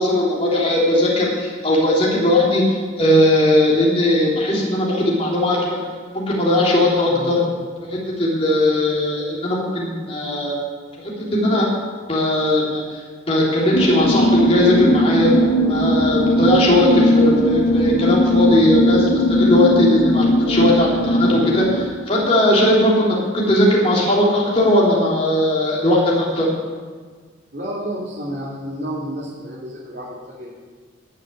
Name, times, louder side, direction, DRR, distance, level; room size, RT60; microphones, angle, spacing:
voice 1, 0.0-5.8 6.1-7.4 7.8-10.5 11.0-11.7 12.1-13.0 13.3-21.6 22.1-26.5, left 1 dB, 30° left, -5 dB, 3.3 m, -18 dB
sound 1, 13.7-21.8, equal, 75° left, 2.0 m, -18 dB
voice 2, 27.5-30.5, right 1 dB, 55° right, -7 dB, 2.8 m, -30 dB
14.0 x 6.6 x 9.8 m, 1.5 s
head